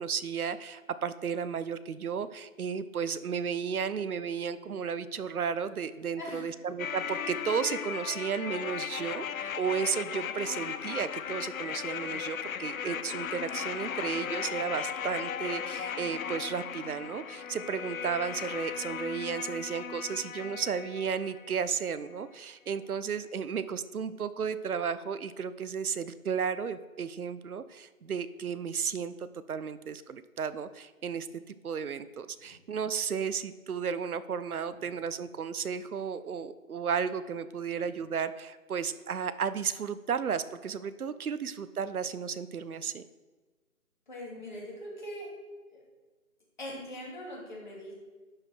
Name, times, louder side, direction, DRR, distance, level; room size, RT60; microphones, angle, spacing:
voice 1, 0.0-43.0, right 6 dB, 80° right, 13 dB, 0.7 m, -33 dB
sound 1, 6.8-21.8 22.1-22.2, left 8 dB, 70° left, 0.5 m, -37 dB
voice 2, 44.1-45.3 45.7-45.8 46.6-47.9, equal, 35° left, -3 dB, 2.5 m, -41 dB
11.5 x 5.0 x 4.5 m, 1.3 s
hypercardioid pair, 175°, 43 cm